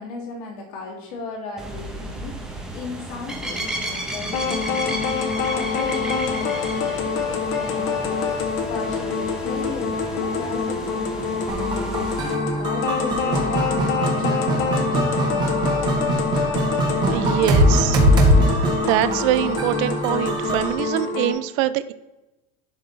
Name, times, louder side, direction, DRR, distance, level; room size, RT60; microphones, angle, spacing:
voice 1, 0.0-15.0, left 4 dB, 75° left, -5 dB, 2.5 m, -36 dB
sound 1, 1.6-12.4, right 1 dB, 5° right, 0.8 m, -33 dB
sound 2, 4.3-21.3, left 5 dB, 55° left, 1.1 m, -26 dB
sound 3, 11.5-20.7, right 1 dB, 25° right, 1.3 m, -22 dB
voice 2, 17.1-18.0 18.4-21.9, right 14 dB, 60° right, 13 dB, 0.4 m, -24 dB
11.5 x 3.8 x 4.0 m, 1.0 s
cardioid pair, 175°, 18 cm